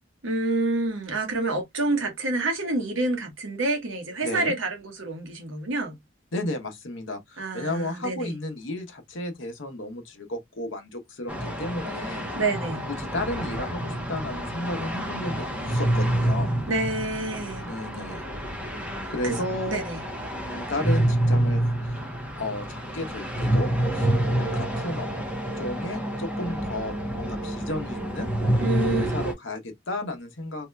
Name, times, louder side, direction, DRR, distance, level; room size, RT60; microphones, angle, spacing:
voice 1, 0.2-5.9 7.4-8.3 12.3-12.8 16.7-17.6 19.2-19.4 19.7-20.0 28.6-29.1, right 2 dB, 70° right, 1.0 m, -28 dB
voice 2, 4.2-4.6 6.3-12.3 12.9-16.6 17.6-18.2 19.1-19.8 20.3-22.0 22.4-24.1 24.4-25.1 25.5-28.3 28.8-30.7, left 1 dB, 70° left, 0.9 m, -33 dB
sound 1, 11.3-29.3, right 1 dB, 5° right, 0.9 m, -28 dB
3.1 x 2.8 x 2.2 m
head